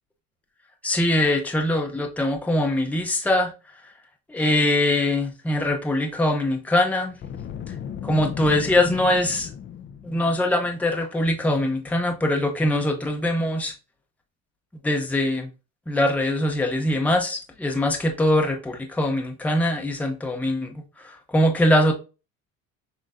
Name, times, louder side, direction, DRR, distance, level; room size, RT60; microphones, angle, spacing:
voice 1, 0.8-3.5 4.3-7.2 7.7-7.8 8.0-9.5 10.0-13.7 14.8-15.5 15.9-21.9, left 1 dB, 5° left, 0.8 m, -22 dB
Boom, 7.1-10.3, left 8 dB, 40° left, 0.6 m, -36 dB
6.3 x 3.1 x 2.5 m
cardioid pair, 130°, 31 cm